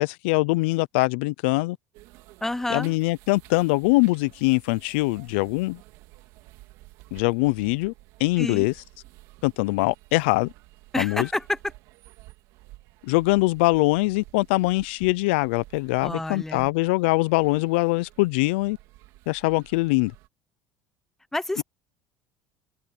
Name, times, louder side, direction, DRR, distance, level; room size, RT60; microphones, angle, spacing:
voice 1, 0.0-1.8 2.7-5.8 7.1-7.9 8.2-8.7 9.4-10.5 11.0-11.3 13.0-18.8 19.3-20.1 21.6-21.7, left 23 dB, 90° left, 0.5 m, -23 dB
sound 1, 1.9-20.3, right 19 dB, 75° right, 2.9 m, -52 dB
voice 2, 2.4-2.9 8.4-8.7 10.9-11.6 16.0-16.7 21.3-21.6, left 1 dB, 5° left, 0.7 m, -28 dB
cardioid pair, 120°, 6 cm